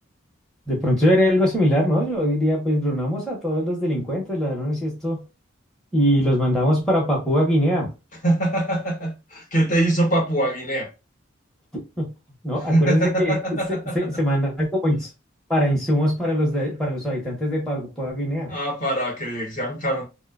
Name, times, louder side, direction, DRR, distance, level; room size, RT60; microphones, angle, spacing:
voice 1, 0.7-5.2 5.9-7.9 11.7-12.1 12.4-13.4 13.9-15.1 15.5-18.5, equal, 5° left, 0.6 m, -22 dB
voice 2, 8.2-10.9 12.6-14.1 18.5-20.0, right 1 dB, 40° left, 0.7 m, -23 dB
2.7 x 2.1 x 2.2 m
head